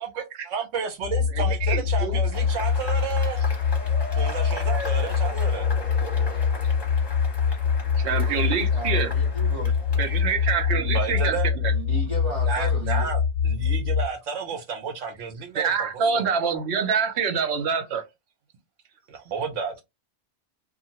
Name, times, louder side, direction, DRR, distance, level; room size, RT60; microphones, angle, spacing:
voice 1, 0.0-3.4 4.1-5.7 10.9-11.5 12.5-15.9 16.1-16.2 19.1-19.8, right 6 dB, 90° right, 1.2 m, -32 dB
sound 1, 1.0-14.1, left 6 dB, 50° left, 0.5 m, -24 dB
voice 2, 1.3-2.2 4.7-4.8 8.0-9.1 10.0-11.4 15.6-18.0, right 6 dB, 70° right, 0.9 m, -26 dB
Cheering / Applause / Crowd, 2.3-10.9, left 1 dB, 25° left, 0.8 m, -38 dB
voice 3, 8.7-10.1 10.7-11.0 11.7-13.1, right 2 dB, 30° right, 0.8 m, -36 dB
2.5 x 2.4 x 2.7 m
omnidirectional pair, 1.2 m